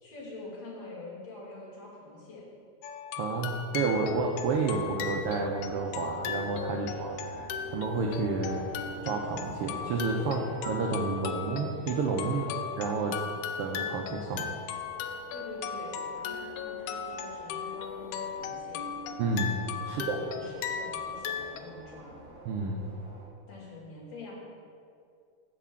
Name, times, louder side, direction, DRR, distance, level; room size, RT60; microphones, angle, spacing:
voice 1, 0.0-2.4 6.7-6.9 10.2-10.5 12.2-12.6 15.3-18.9 19.8-22.2 23.5-24.3, left 2 dB, 65° left, -6 dB, 3.5 m, -45 dB
sound 1, 2.8-21.6, left 7 dB, 90° left, 2.0 m, -37 dB
voice 2, 3.2-8.6 9.0-12.5 12.8-13.2 13.6-14.6 19.2-19.6 19.9-20.2 22.5-22.8, right 4 dB, 85° right, 1 dB, 1.3 m, -30 dB
sound 2, 3.7-23.3, right 2 dB, 60° right, 2.6 m, -50 dB
7.4 x 6.1 x 6.8 m, 2.3 s
omnidirectional pair, 3.3 m